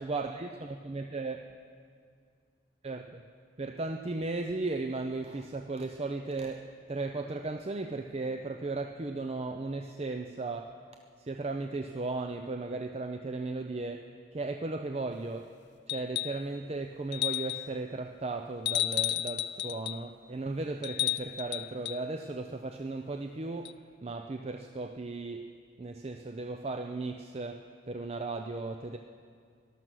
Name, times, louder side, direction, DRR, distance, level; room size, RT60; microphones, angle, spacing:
voice 1, 0.0-1.4 2.8-3.3 3.6-10.8 11.2-15.5 15.9-29.0, right 3 dB, 30° right, 5 dB, 0.5 m, -36 dB
sound 1, 15.9-16.5 17.1-17.7 18.7-20.0 20.8-22.0 23.7-23.8, left 15 dB, 55° left, 0.4 m, -32 dB
18.0 x 12.5 x 6.3 m, 2.2 s
head